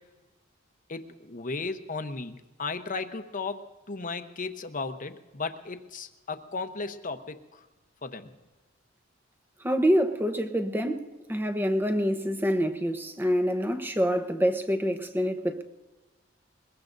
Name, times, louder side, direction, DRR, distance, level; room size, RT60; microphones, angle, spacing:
voice 1, 0.9-7.7 8.0-8.3, left 4 dB, 45° left, 0.9 m, -35 dB
voice 2, 9.6-15.6, equal, 10° right, 0.9 m, -26 dB
22.0 x 21.5 x 2.6 m
head